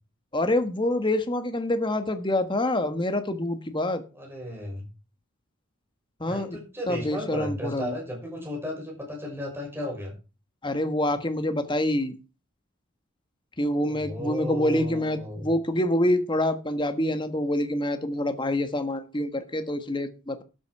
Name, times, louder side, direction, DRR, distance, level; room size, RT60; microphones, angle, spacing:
voice 1, 0.3-4.0 6.2-6.6 6.9-8.0 10.6-12.1 13.6-20.4, left 1 dB, 20° left, 8 dB, 1.4 m, -26 dB
voice 2, 4.2-4.9 6.3-10.1 13.8-15.5, equal, 10° right, 0 dB, 5.5 m, -34 dB
12.5 x 8.7 x 4.8 m, 0.32 s
head